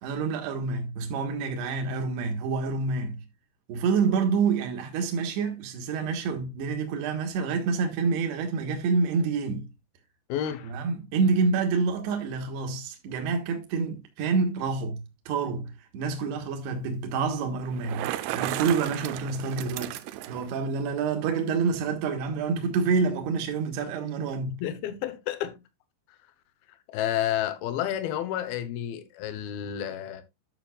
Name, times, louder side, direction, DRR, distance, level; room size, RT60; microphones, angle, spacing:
voice 1, 0.0-3.2 3.7-9.7 10.6-18.1 18.3-20.0 20.3-24.6, right 5 dB, 70° right, 3.2 m, -27 dB
voice 2, 10.3-10.7 24.6-25.6 26.9-30.2, left 11 dB, 70° left, 2.4 m, -30 dB
Bicycle, 17.7-20.5, right 14 dB, 90° right, 3.2 m, -34 dB
11.5 x 6.9 x 2.4 m
omnidirectional pair, 5.5 m